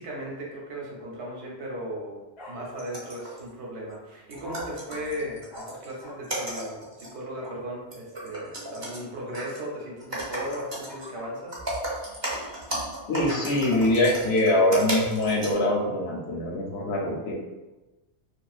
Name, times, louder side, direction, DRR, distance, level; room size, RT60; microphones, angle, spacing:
voice 1, 0.0-2.2 2.5-11.6, equal, 75° right, -3 dB, 1.0 m, -37 dB
Bark, 2.4-2.5 4.4-4.6 5.5-5.7 6.0-6.2 7.4-7.6 10.1-11.3, left 2 dB, 45° left, 0.7 m, -43 dB
sound 1, 2.6-3.5 3.9-4.0 4.3-5.9 6.2-7.1 7.4-7.5 7.9-9.0 9.3-9.6 10.0-11.1 11.4-15.5, right 1 dB, 35° right, 0.5 m, -34 dB
voice 2, 13.1-17.3, left 1 dB, 70° left, -2 dB, 0.8 m, -23 dB
2.4 x 2.3 x 2.3 m, 1.1 s
omnidirectional pair, 1.2 m